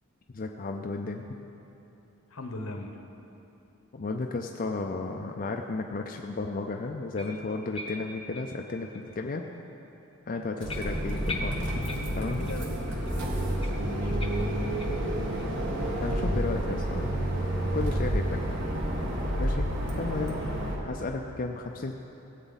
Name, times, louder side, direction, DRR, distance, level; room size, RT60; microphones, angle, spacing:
voice 1, 0.3-1.3 3.9-9.4 10.3-11.8 12.1-12.5 16.0-17.4 17.7-18.5 19.4-19.7 20.0-20.4 20.8-21.9, left 3 dB, 40° left, 2 dB, 0.5 m, -33 dB
voice 2, 2.3-3.0 12.3-15.0 20.4-20.5, left 1 dB, 75° left, 4 dB, 1.0 m, -41 dB
sound 1, 7.2-9.1 9.5-9.7 10.1-10.2 10.7-12.7 13.1-13.2 13.6-15.1 15.4-15.5 16.0-16.1 16.6-16.7, left 2 dB, 25° left, 0.8 m, -41 dB
sound 2, 10.6-20.8, right 1 dB, 55° right, 1.5 m, -29 dB
17.0 x 8.2 x 4.0 m, 2.9 s
head